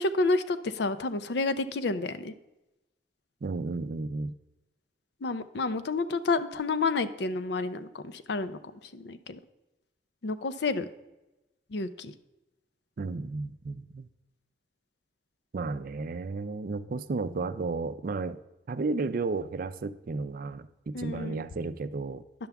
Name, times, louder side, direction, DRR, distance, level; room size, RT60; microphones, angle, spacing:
voice 1, 0.0-2.3 5.2-8.6 8.9-9.4 10.2-10.9 11.7-12.1 20.9-21.4, left 3 dB, 70° left, 12 dB, 0.5 m, -30 dB
voice 2, 3.4-4.3 13.0-14.1 15.5-18.4 18.7-22.2, right 3 dB, 50° right, 13 dB, 0.4 m, -33 dB
10.0 x 6.9 x 3.5 m, 0.98 s
head